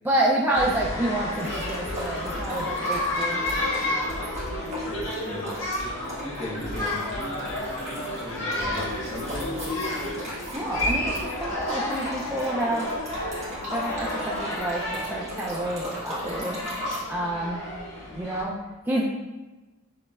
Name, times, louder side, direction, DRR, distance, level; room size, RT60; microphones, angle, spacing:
voice 1, 0.0-3.4 10.5-12.9 13.7-16.6 17.1-17.6 18.2-18.5 18.9-19.0, right 1 dB, 10° right, -4 dB, 0.3 m, -28 dB
sound 1, 0.5-18.4, left 1 dB, 70° left, 1.2 m, -31 dB
sound 2, 1.3-17.0, equal, 30° right, 1.3 m, -38 dB
voice 2, 4.8-9.9, left 1 dB, 25° left, -4 dB, 0.9 m, -39 dB
6.5 x 3.1 x 2.3 m, 1.1 s
head